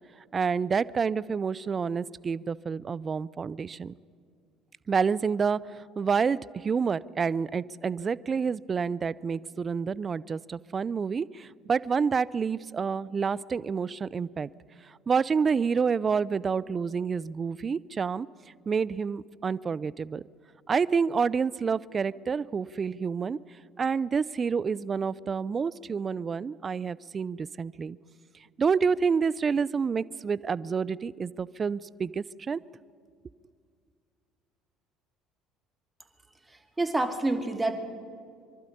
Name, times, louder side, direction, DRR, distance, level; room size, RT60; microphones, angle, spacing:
voice 1, 0.3-3.9 4.9-14.5 15.1-18.3 18.7-20.2 20.7-23.4 23.8-28.0 28.6-32.6, right 5 dB, 35° right, 18 dB, 0.5 m, -28 dB
voice 2, 36.8-37.7, right 2 dB, 15° right, 5 dB, 2.4 m, -27 dB
24.5 x 12.0 x 10.0 m, 2.2 s
hypercardioid pair, 65°, 0 cm